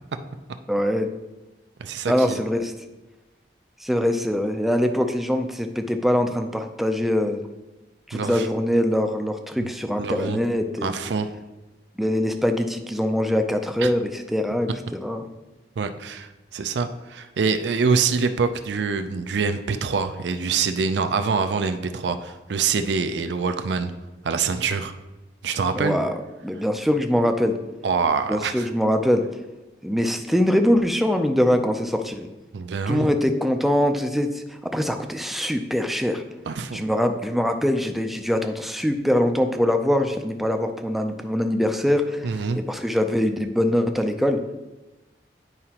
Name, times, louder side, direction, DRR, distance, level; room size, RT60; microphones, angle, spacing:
voice 1, 0.7-1.1 2.1-2.8 3.8-7.4 8.1-11.0 12.0-15.2 25.8-26.2 26.4-27.6 28.3-29.2 29.8-32.3 32.9-36.2 36.7-44.4, equal, ahead, 5 dB, 0.4 m, -23 dB
voice 2, 1.8-2.4 8.1-8.5 9.6-9.7 10.0-10.4 10.8-11.3 13.8-13.9 15.8-23.9 24.2-24.9 25.4-26.0 27.8-28.7 32.5-33.1 36.5-36.8 42.2-42.6, right 5 dB, 85° right, 8 dB, 0.4 m, -25 dB
9.4 x 4.8 x 2.9 m, 1.1 s
head